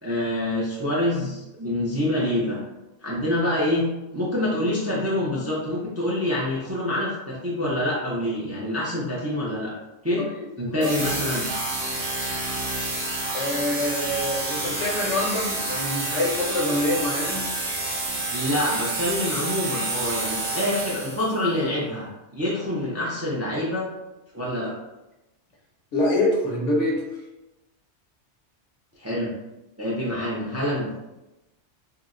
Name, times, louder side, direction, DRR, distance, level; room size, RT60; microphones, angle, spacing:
voice 1, 0.0-2.6 3.0-3.9 4.1-9.7 10.0-10.2 10.6-11.5 18.3-22.1 22.3-23.9 24.3-24.7 29.0-29.3 29.8-30.9, left 1 dB, 25° right, -5 dB, 0.3 m, -26 dB
sound 1, 10.8-21.4, right 2 dB, 55° right, 0.9 m, -29 dB
voice 2, 13.3-17.4 25.9-27.0, left 1 dB, 80° left, -2 dB, 1.1 m, -25 dB
2.8 x 2.0 x 3.6 m, 0.97 s
omnidirectional pair, 1.2 m